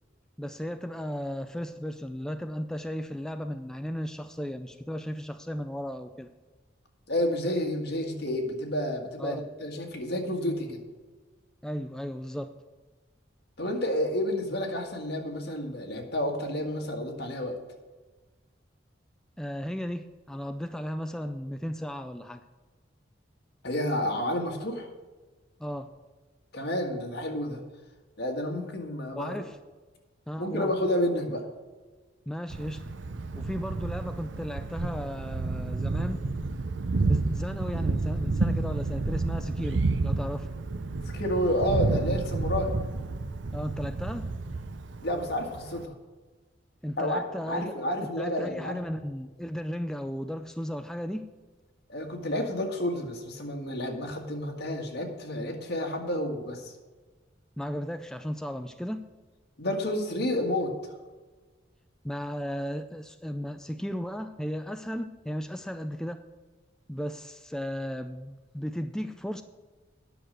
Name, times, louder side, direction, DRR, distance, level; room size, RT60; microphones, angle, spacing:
voice 1, 0.4-6.3 9.2-9.5 11.6-12.6 19.4-22.4 25.6-26.0 29.1-29.6 30.3-30.7 32.3-32.8 33.4-36.2 37.1-40.5 43.5-44.3 46.8-47.7 48.0-51.3 57.6-59.1 62.0-66.3 66.9-69.4, equal, 5° left, 8 dB, 0.4 m, -35 dB
voice 2, 7.1-10.8 13.6-17.6 23.6-24.9 26.5-27.6 28.2-29.4 30.4-31.5 41.1-42.7 45.0-45.9 47.0-48.8 51.9-56.7 59.6-60.7, left 1 dB, 60° left, 2 dB, 1.8 m, -30 dB
Thunder, 32.5-45.8, right 3 dB, 85° right, 0.7 m, -30 dB
10.0 x 6.5 x 7.7 m, 1.3 s
head